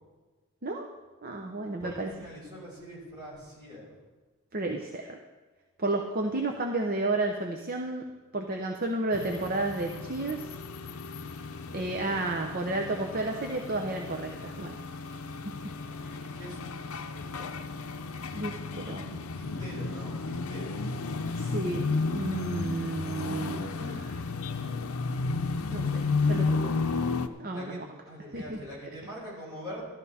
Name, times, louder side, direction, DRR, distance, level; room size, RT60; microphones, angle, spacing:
voice 1, 1.2-2.1 4.5-5.2 5.8-8.0 8.3-10.4 11.7-14.8 16.0-16.4 18.3-19.2 21.3-24.2 25.7-26.7 27.4-27.8 28.3-28.6, right 2 dB, 40° right, 3 dB, 0.7 m, -32 dB
voice 2, 1.8-4.0 11.7-12.4 16.3-17.7 19.3-20.8 26.2-27.1 27.5-29.8, equal, 20° right, -6 dB, 5.1 m, -44 dB
sound 1, 9.1-27.3, left 4 dB, 70° left, 0.7 m, -33 dB
13.0 x 12.5 x 4.2 m, 1.3 s
head